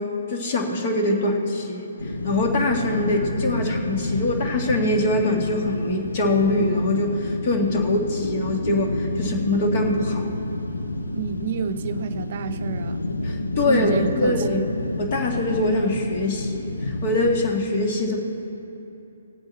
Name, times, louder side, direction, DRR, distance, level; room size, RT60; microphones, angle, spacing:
voice 1, 0.0-10.3 13.2-14.6 15.0-18.2, left 2 dB, 40° left, 2 dB, 1.9 m, -23 dB
sound 1, 2.0-17.5, left 2 dB, 85° left, 0.8 m, -29 dB
voice 2, 11.1-13.1 13.7-14.8, right 7 dB, 45° right, 10 dB, 0.6 m, -29 dB
18.0 x 8.0 x 4.2 m, 3.0 s
figure-of-eight pair, 140°, 0 cm